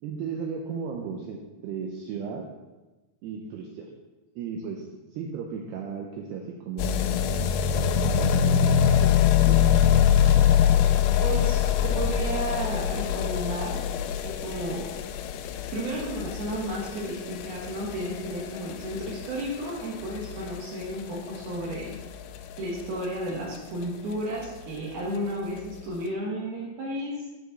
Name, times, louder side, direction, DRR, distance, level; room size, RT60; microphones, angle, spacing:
voice 1, 0.0-2.5 3.2-3.9 4.4-7.5 7.7-9.2 9.4-9.7, right 6 dB, 85° right, 1 dB, 2.3 m, -36 dB
sound 1, 6.8-23.6 23.8-23.9 24.1-24.2 24.4-24.5 24.8-24.9 25.6-25.7, left 9 dB, 90° left, 2.5 m, -24 dB
voice 2, 11.1-13.8 14.2-14.9 15.7-22.0 22.6-27.2, right 1 dB, 65° right, -3 dB, 2.8 m, -33 dB
13.0 x 4.9 x 4.0 m, 1.1 s
omnidirectional pair, 5.5 m